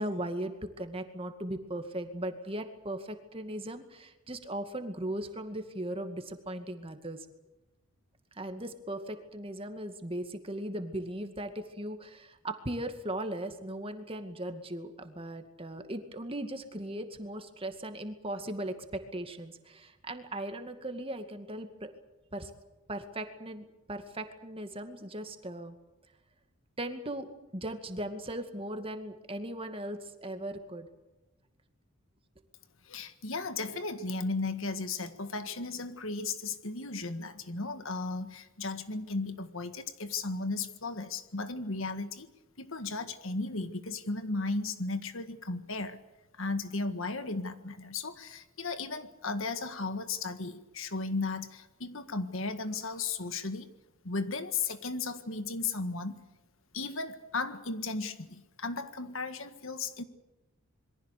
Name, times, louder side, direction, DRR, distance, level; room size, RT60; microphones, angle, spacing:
voice 1, 0.0-7.3 8.3-21.9 22.3-22.5 22.9-25.8 26.8-30.9, right 1 dB, 25° right, 7 dB, 2.2 m, -38 dB
voice 2, 32.8-42.3 42.6-46.0 46.4-53.7 54.0-56.2 56.7-60.0, left 3 dB, 65° left, 10 dB, 1.7 m, -35 dB
27.0 x 23.0 x 6.7 m, 1.0 s
head